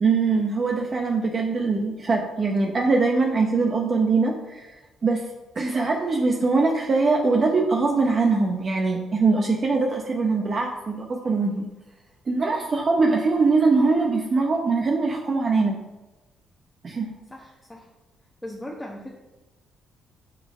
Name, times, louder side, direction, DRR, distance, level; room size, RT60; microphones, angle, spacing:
voice 1, 0.0-5.3 5.5-11.7 12.3-15.8 16.8-17.1, right 3 dB, 40° right, 2 dB, 0.9 m, -22 dB
voice 2, 17.3-17.9 18.4-19.1, left 1 dB, 10° left, -2 dB, 1.1 m, -38 dB
6.6 x 6.4 x 5.4 m, 1.1 s
cardioid pair, 90°, 0 cm